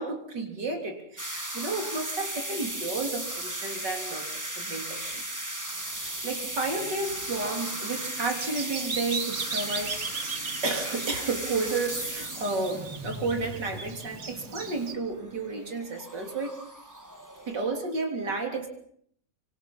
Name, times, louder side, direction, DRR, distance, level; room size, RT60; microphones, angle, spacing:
voice 1, 0.0-4.3 4.6-5.2 5.9-10.3 10.6-16.5 17.5-18.7, right 3 dB, 80° right, 4 dB, 4.1 m, -32 dB
sound 1, 1.2-17.6, right 1 dB, 10° right, 1.8 m, -36 dB
Bird vocalization bird call bird song, 6.6-14.9, right 5 dB, 50° right, 2.1 m, -38 dB
25.0 x 24.5 x 5.6 m, 0.64 s
omnidirectional pair, 1.9 m